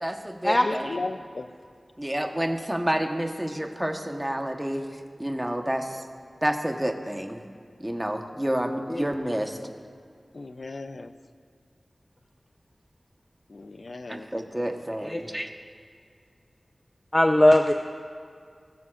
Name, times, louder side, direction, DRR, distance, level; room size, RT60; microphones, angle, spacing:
voice 1, 0.0-1.0 2.0-4.8 5.2-6.0 6.4-7.4 7.8-9.6 14.1-15.5, right 1 dB, 15° right, 4 dB, 1.2 m, -29 dB
voice 2, 0.5-1.5 10.3-11.1 13.5-14.3, left 3 dB, 70° left, 10 dB, 0.5 m, -35 dB
voice 3, 17.1-17.7, left 1 dB, 25° left, 4 dB, 0.5 m, -19 dB
19.0 x 14.0 x 2.5 m, 2.2 s
wide cardioid pair, 50°, 0 cm